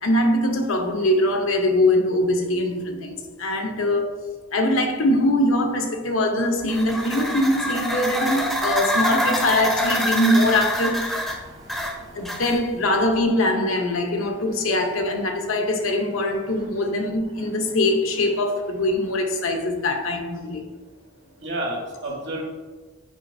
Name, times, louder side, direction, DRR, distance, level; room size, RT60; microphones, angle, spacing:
voice 1, 0.0-4.2 4.5-11.3 12.1-20.6, left 1 dB, 85° left, 0.8 m, -22 dB
sound 1, 6.6-12.8, equal, ahead, 0.5 m, -26 dB
voice 2, 11.4-12.2 21.4-22.4, right 1 dB, 60° right, 1.4 m, -32 dB
7.2 x 5.2 x 2.7 m
head